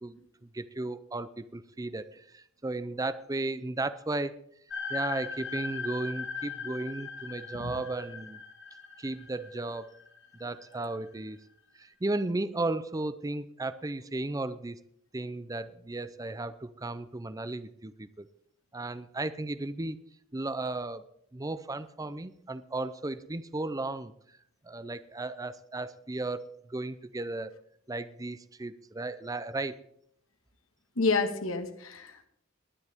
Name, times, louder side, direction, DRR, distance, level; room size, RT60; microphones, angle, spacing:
voice 1, 0.0-4.3 4.9-8.4 9.0-9.9 10.4-11.4 11.8-14.8 15.1-18.3 18.7-20.0 20.3-21.0 21.3-24.1 24.6-27.5 27.9-29.8, right 2 dB, 15° right, 14 dB, 0.5 m, -35 dB
sound 1, 4.7-10.9, left 5 dB, 60° left, 2.3 m, -39 dB
voice 2, 31.0-32.3, left 4 dB, 85° left, 7 dB, 1.8 m, -29 dB
19.5 x 10.5 x 3.6 m, 0.70 s
head